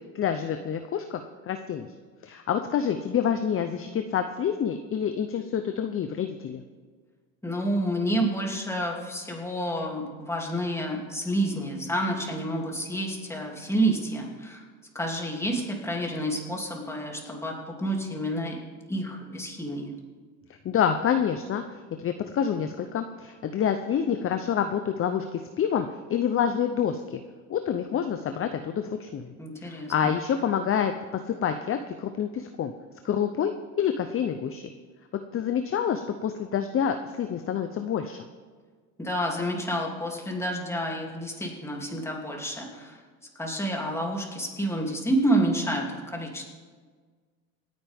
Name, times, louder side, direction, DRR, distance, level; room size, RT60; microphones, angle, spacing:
voice 1, 0.1-1.9 2.2-6.6 20.6-21.6 22.0-27.2 27.5-29.3 29.6-30.9 31.3-32.7 33.0-33.5 33.8-34.7 35.3-38.2, left 8 dB, 35° left, 7 dB, 0.7 m, -27 dB
voice 2, 7.4-14.6 14.9-18.6 18.9-19.9 29.4-30.1 39.0-43.0 43.4-46.4, right 1 dB, 5° left, -1 dB, 2.8 m, -29 dB
27.0 x 9.4 x 3.6 m, 1.5 s
cardioid pair, 110°, 39 cm